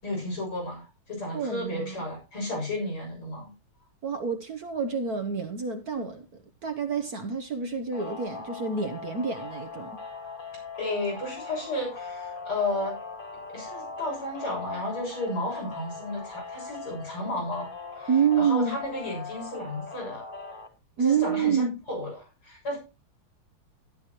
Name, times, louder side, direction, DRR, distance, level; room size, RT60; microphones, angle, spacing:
voice 1, 0.0-3.5 10.8-13.0 13.5-20.3 21.0-22.2 22.4-22.8, left 1 dB, 75° left, 8.4 m, -33 dB
voice 2, 1.3-2.0 4.0-6.3 6.6-10.0 18.1-18.8 21.0-21.8, right 6 dB, 55° right, 1.2 m, -27 dB
sound 1, 7.9-20.7, left 4 dB, 25° left, 1.5 m, -40 dB
13.0 x 11.5 x 3.0 m
omnidirectional pair, 2.3 m